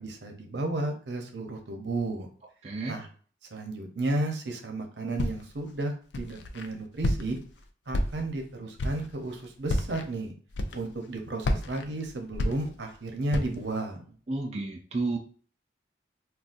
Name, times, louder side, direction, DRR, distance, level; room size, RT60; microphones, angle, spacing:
voice 1, 0.0-2.3 2.8-3.1 3.5-7.4 7.9-10.3 10.7-14.2, right 2 dB, 80° right, 4 dB, 0.7 m, -33 dB
voice 2, 2.6-3.0 14.3-15.2, right 3 dB, 35° right, 0 dB, 0.4 m, -31 dB
Walk footsteps, 5.2-5.6 6.1-6.7 7.0-7.5 7.9-8.4 8.8-9.1 9.6-10.0 10.5-11.1 11.4-13.0 13.3-13.7, left 1 dB, 85° left, 0.4 m, -30 dB
3.8 x 2.3 x 2.5 m, 0.42 s
head